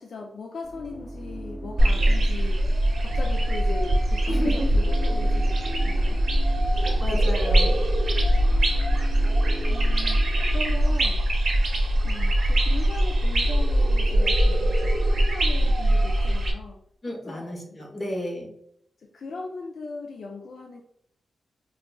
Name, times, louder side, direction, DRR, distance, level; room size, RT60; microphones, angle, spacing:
voice 1, 0.0-6.2 8.2-8.6 9.0-9.2 9.7-11.5 12.0-18.2 19.0-20.8, left 3 dB, 65° left, 1 dB, 0.3 m, -39 dB
sound 1, 0.6-11.4, equal, 30° right, 0.3 m, -39 dB
sound 2, 1.8-16.5, right 1 dB, 60° right, 0.7 m, -22 dB
voice 2, 4.3-4.7 6.7-7.7 17.0-18.5, equal, 25° left, -1 dB, 1.0 m, -32 dB
4.8 x 2.3 x 2.2 m, 0.72 s
wide cardioid pair, 110°, 0 cm